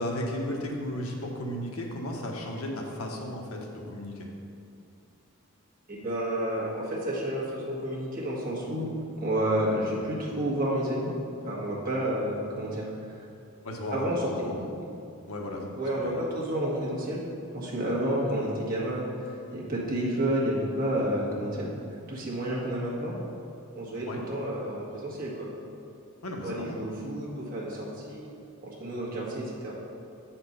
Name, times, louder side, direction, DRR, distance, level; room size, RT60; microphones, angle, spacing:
voice 1, 0.0-4.3 13.6-14.7 15.3-15.6 16.0-16.2 24.0-24.2 26.2-26.8, left 1 dB, 85° left, 0 dB, 1.1 m, -34 dB
voice 2, 5.9-11.1 11.4-12.9 13.9-14.7 15.7-17.2 17.5-19.0 19.5-21.7 22.1-23.2 23.7-25.5 26.4-28.3 28.6-29.7, right 1 dB, 40° right, -5 dB, 1.6 m, -30 dB
7.9 x 4.5 x 5.4 m, 2.5 s
head